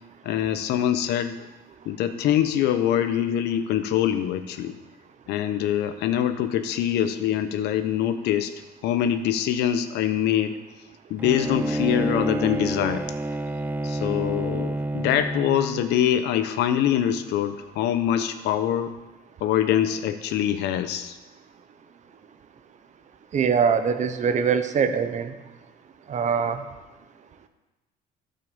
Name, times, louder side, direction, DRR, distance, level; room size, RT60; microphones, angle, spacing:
voice 1, 0.2-1.3 1.8-4.7 5.3-8.5 8.8-10.5 11.1-13.0 13.8-18.9 19.4-21.2, left 10 dB, 85° left, 10 dB, 0.9 m, -24 dB
Bowed string instrument, 11.2-15.9, right 1 dB, 10° right, 0.5 m, -28 dB
voice 2, 23.3-25.3 26.1-26.6, right 6 dB, 45° right, 9 dB, 1.0 m, -23 dB
12.5 x 5.6 x 7.1 m, 1.1 s
cardioid pair, 110°, 17 cm